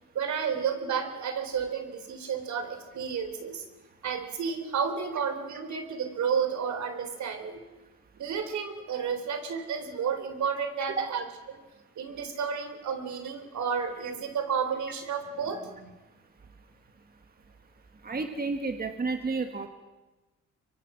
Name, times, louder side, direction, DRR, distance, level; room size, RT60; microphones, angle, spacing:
voice 1, 0.2-3.6 4.0-7.6 8.2-11.6 12.0-15.9, right 6 dB, 70° right, 8 dB, 3.5 m, -31 dB
voice 2, 18.0-19.7, right 4 dB, 30° right, 6 dB, 1.8 m, -31 dB
23.5 x 23.5 x 6.2 m, 1.2 s
cardioid pair, 90°, 30 cm